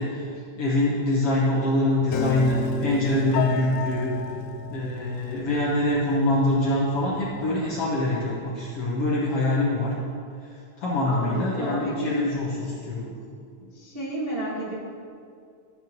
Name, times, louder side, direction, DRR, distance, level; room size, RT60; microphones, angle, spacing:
voice 1, 0.0-4.1 4.7-9.9 10.8-13.1, left 1 dB, 60° left, -5 dB, 1.6 m, -24 dB
Piano, 2.1-8.3, left 7 dB, 80° left, 1.6 m, -33 dB
voice 2, 11.0-12.1 13.6-14.7, right 1 dB, 25° right, -9 dB, 1.2 m, -31 dB
12.5 x 8.2 x 3.0 m, 2.3 s
omnidirectional pair, 3.7 m